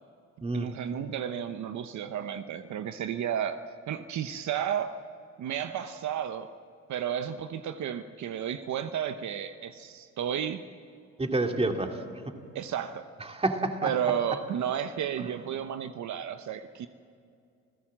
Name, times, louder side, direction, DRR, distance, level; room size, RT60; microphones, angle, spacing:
voice 1, 0.5-3.6 3.9-5.0 5.4-6.5 6.9-10.6 12.5-13.0 13.8-16.9, right 9 dB, 70° right, 9 dB, 1.0 m, -32 dB
voice 2, 11.2-12.0 13.3-13.9, right 2 dB, 20° right, 4 dB, 2.4 m, -28 dB
28.5 x 16.0 x 7.5 m, 2.4 s
cardioid pair, 90°, 30 cm